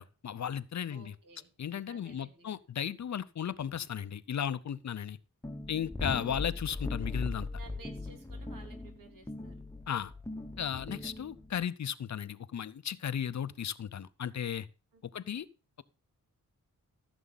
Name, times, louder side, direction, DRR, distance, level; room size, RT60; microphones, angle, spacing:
voice 1, 0.0-1.1 1.6-5.2 5.7-7.5 9.9-10.1 10.6-14.7 15.1-15.5, left 9 dB, 55° left, 0.7 m, -35 dB
voice 2, 0.9-1.5 1.9-2.5 6.1-6.6 7.6-9.5 10.7-11.0 14.9-15.4, right 4 dB, 75° right, 3.3 m, -55 dB
sound 1, 5.4-11.6, left 2 dB, 10° left, 1.0 m, -39 dB
15.0 x 7.1 x 4.0 m
wide cardioid pair, 110°, 33 cm